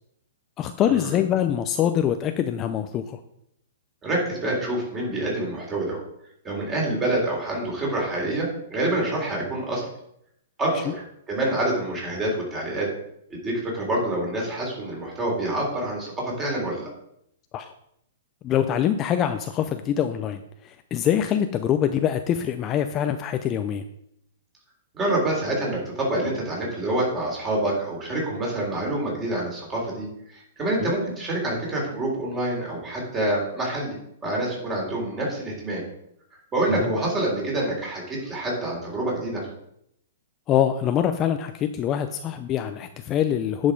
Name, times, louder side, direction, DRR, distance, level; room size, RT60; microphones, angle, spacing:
voice 1, 0.6-3.2 17.5-17.7 18.4-23.8 30.8-30.9 36.7-36.9 40.5-43.7, left 10 dB, 25° left, 8 dB, 0.5 m, -24 dB
voice 2, 4.0-6.0 6.4-9.9 10.6-11.0 11.3-12.9 13.3-16.9 24.9-34.0 34.2-35.8 36.5-39.5, right 1 dB, 20° right, -3 dB, 3.8 m, -27 dB
10.0 x 5.3 x 5.2 m, 0.75 s
hypercardioid pair, 150°, 0 cm